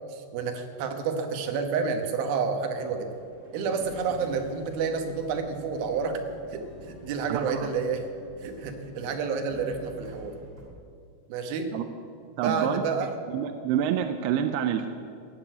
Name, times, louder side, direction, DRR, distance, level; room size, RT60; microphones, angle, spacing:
voice 1, 0.1-3.1 3.5-6.2 6.5-6.6 7.0-8.1 8.4-10.3 11.3-11.7 12.4-13.1, right 5 dB, 65° right, 5 dB, 2.8 m, -29 dB
sound 1, 2.6-10.6, right 1 dB, 25° right, 2.1 m, -50 dB
sound 2, 3.7-10.0, left 4 dB, 5° right, 3.3 m, -51 dB
voice 2, 7.3-7.7 11.7-11.8 12.4-12.8 13.3-14.9, right 9 dB, 85° right, 7 dB, 2.4 m, -27 dB
15.5 x 8.3 x 9.2 m, 2.4 s
omnidirectional pair, 5.2 m